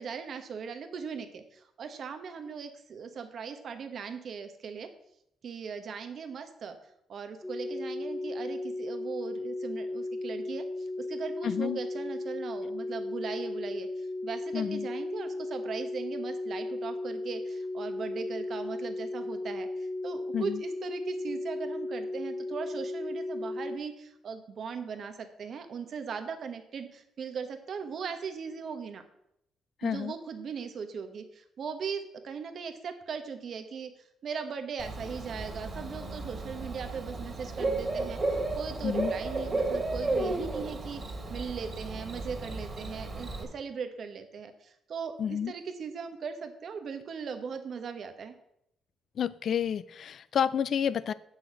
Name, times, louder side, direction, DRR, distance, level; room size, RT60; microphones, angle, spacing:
voice 1, 0.0-4.9 5.4-6.8 7.1-29.0 29.8-33.9 34.2-48.3, right 6 dB, 60° right, 7 dB, 1.2 m, -39 dB
sound 1, 7.4-23.8, left 2 dB, 5° left, 0.8 m, -35 dB
voice 2, 11.4-11.8 14.5-14.9 20.3-20.6 29.8-30.1 38.8-39.1 45.2-45.5 49.2-51.1, left 8 dB, 60° left, 17 dB, 0.4 m, -30 dB
Bird / Cricket, 34.8-43.4, right 2 dB, 30° right, 2.3 m, -33 dB
7.8 x 6.3 x 6.1 m, 0.77 s
cardioid pair, 90°, 0 cm